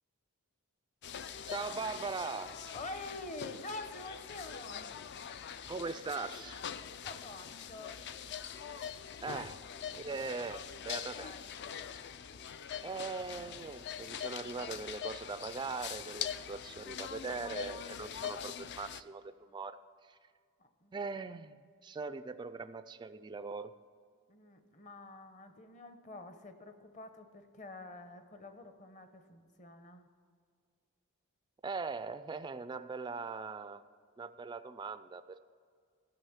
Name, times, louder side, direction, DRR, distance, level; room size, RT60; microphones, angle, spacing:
sound 1, 1.0-19.0, left 8 dB, 50° left, 0.4 m, -43 dB
voice 1, 1.5-2.7 5.7-6.6 9.2-9.6 9.9-11.3 12.8-19.8 20.1-20.2 20.9-23.7 31.6-33.8 34.2-35.4, right 4 dB, 20° right, 12 dB, 0.3 m, -40 dB
voice 2, 2.7-4.9 6.9-8.0 9.3-9.4 11.0-11.5 20.6-21.0 24.3-30.1, left 2 dB, 35° left, 8 dB, 0.9 m, -47 dB
14.5 x 6.2 x 7.2 m, 2.1 s
head